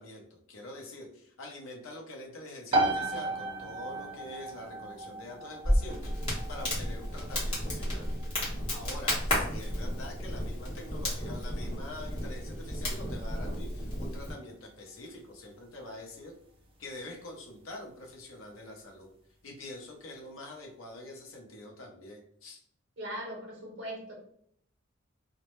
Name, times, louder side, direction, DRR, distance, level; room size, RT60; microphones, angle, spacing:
voice 1, 0.0-8.1 8.7-16.3 16.8-19.1 19.4-22.6, left 2 dB, 75° left, 0 dB, 0.6 m, -45 dB
sound 1, 2.7-17.2, right 2 dB, 25° right, 0.3 m, -37 dB
Crackle, 5.6-14.3, equal, 25° left, 0.9 m, -32 dB
voice 2, 23.0-24.2, right 1 dB, 60° right, 0 dB, 0.6 m, -40 dB
2.1 x 2.0 x 2.9 m, 0.67 s
head